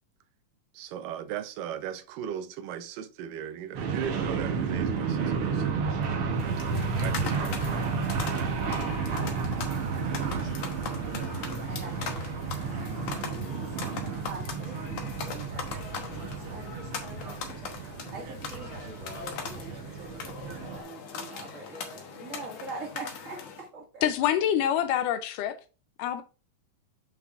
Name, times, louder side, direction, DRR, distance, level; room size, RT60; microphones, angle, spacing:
voice 1, 0.7-5.8 7.0-7.7, right 9 dB, 90° right, 2.4 m, -37 dB
sound 1, 3.7-20.8, right 5 dB, 65° right, 1.3 m, -32 dB
sound 2, 6.3-23.7, left 6 dB, 60° left, 1.9 m, -40 dB
voice 2, 11.7-13.6 14.2-15.8 16.1-16.7 17.0-17.3 17.6-17.7 18.1-23.4 23.7-24.0, right 3 dB, 30° right, 1.7 m, -44 dB
voice 3, 24.0-25.6 26.0-26.2, left 10 dB, 80° left, 2.1 m, -26 dB
8.3 x 5.7 x 2.5 m
omnidirectional pair, 3.8 m